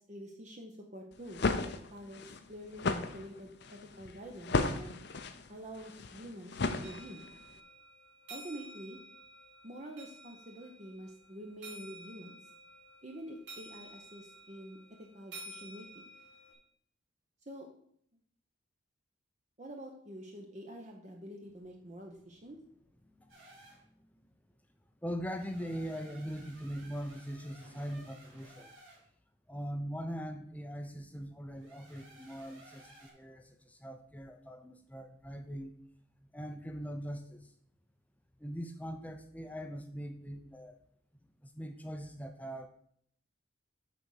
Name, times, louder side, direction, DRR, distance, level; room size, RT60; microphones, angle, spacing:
voice 1, 0.0-5.0 5.5-7.3 8.3-9.0 9.6-12.5 13.0-16.1 17.4-17.7 19.6-22.6, equal, 35° right, 1 dB, 0.8 m, -47 dB
sound 1, 1.1-7.4, left 3 dB, 55° left, 0.6 m, -35 dB
sound 2, 6.8-16.5, right 2 dB, 60° right, 4.1 m, -52 dB
sound 3, 23.3-23.8 25.2-29.1 31.5-33.1, right 1 dB, 75° right, 4.1 m, -57 dB
voice 2, 25.0-28.7 29.5-35.7 36.2-37.5 38.4-40.8 41.4-42.7, equal, 5° left, 6 dB, 0.6 m, -41 dB
8.6 x 4.1 x 6.3 m, 0.64 s
head